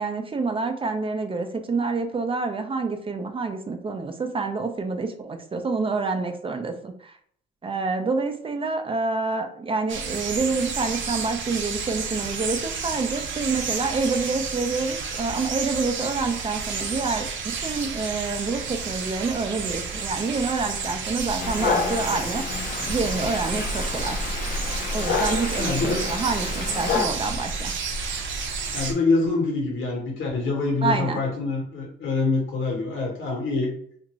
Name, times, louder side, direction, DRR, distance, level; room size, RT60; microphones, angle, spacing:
voice 1, 0.0-7.2 7.6-17.3 17.6-22.5 22.9-24.2 24.9-27.7 30.8-31.2, right 4 dB, 25° right, 6 dB, 0.4 m, -27 dB
sound 1, 9.9-28.9, right 4 dB, 70° right, 0.6 m, -30 dB
Dog, 21.4-27.1, left 5 dB, 45° left, 0.5 m, -29 dB
voice 2, 25.6-26.0 28.7-33.7, left 3 dB, 80° left, 0 dB, 1.1 m, -25 dB
2.5 x 2.5 x 3.0 m, 0.62 s
cardioid pair, 90°, 20 cm